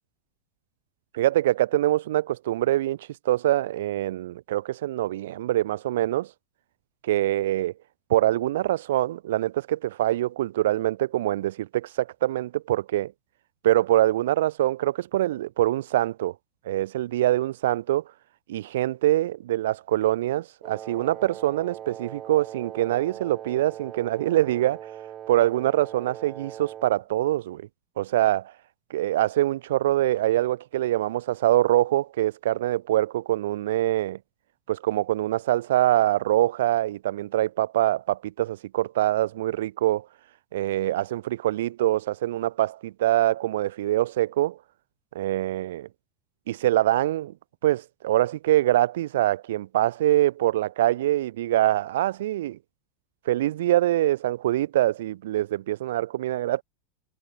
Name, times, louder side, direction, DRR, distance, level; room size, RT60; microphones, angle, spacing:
voice 1, 1.1-6.3 7.0-7.7 8.1-13.1 13.6-16.3 16.6-18.0 18.5-24.9 25.3-27.7 28.0-28.5 28.9-34.2 34.7-40.1 40.5-44.6 45.1-45.9 46.5-47.3 47.6-52.6 53.2-56.6, right 14 dB, 70° right, 1.3 m, -24 dB
Wind instrument woodwind instrument, 20.6-27.1, right 10 dB, 35° right, 5.1 m, -40 dB
hypercardioid pair, 95°, 0 cm